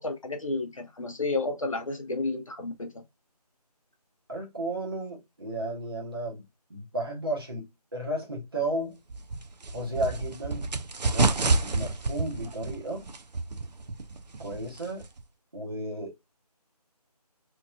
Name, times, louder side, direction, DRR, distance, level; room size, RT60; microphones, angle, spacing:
voice 1, 0.0-3.0, left 3 dB, 55° left, 0.6 m, -31 dB
voice 2, 4.3-6.4 6.7-9.0 9.7-10.7 11.0-13.1 14.4-15.1 15.5-16.2, right 1 dB, 35° right, 1.0 m, -33 dB
sound 1, 9.1-15.2, right 3 dB, 85° right, 0.5 m, -29 dB
2.9 x 2.4 x 2.3 m
figure-of-eight pair, 175°, 21 cm